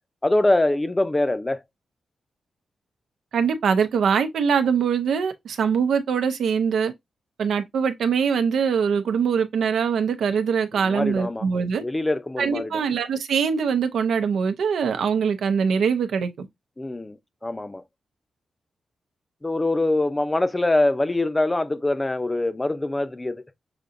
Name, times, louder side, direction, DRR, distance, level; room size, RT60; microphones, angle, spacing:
voice 1, 0.2-1.6 10.8-11.4 11.8-12.7 16.8-17.2 17.4-17.8 19.4-23.4, left 2 dB, 15° left, 0.6 m, -23 dB
voice 2, 3.3-6.9 7.4-11.8 12.4-16.5, right 6 dB, 85° right, 0.7 m, -23 dB
6.8 x 2.8 x 2.6 m
wide cardioid pair, 115°, 0 cm